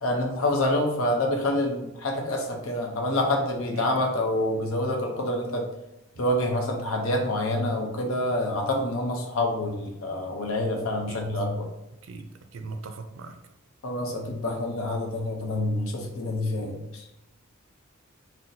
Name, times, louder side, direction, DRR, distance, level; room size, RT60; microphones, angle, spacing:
voice 1, 0.0-5.7 6.2-11.7 13.8-17.0, left 1 dB, 80° left, 2 dB, 0.7 m, -27 dB
voice 2, 3.7-4.2 11.1-11.3 12.0-13.3, right 3 dB, 65° right, 7 dB, 0.4 m, -39 dB
4.0 x 2.1 x 2.7 m, 0.91 s
head